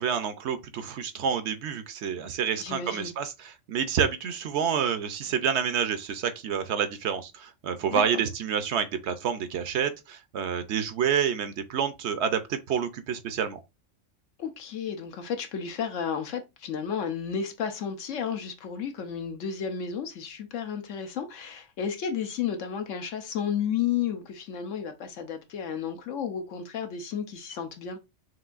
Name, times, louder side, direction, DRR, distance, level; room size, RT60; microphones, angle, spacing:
voice 1, 0.0-13.6, right 7 dB, 70° right, 0.9 m, -28 dB
voice 2, 2.6-3.1 7.9-8.0 14.4-28.0, left 7 dB, 80° left, 1.1 m, -32 dB
6.0 x 2.6 x 2.4 m
omnidirectional pair, 1.3 m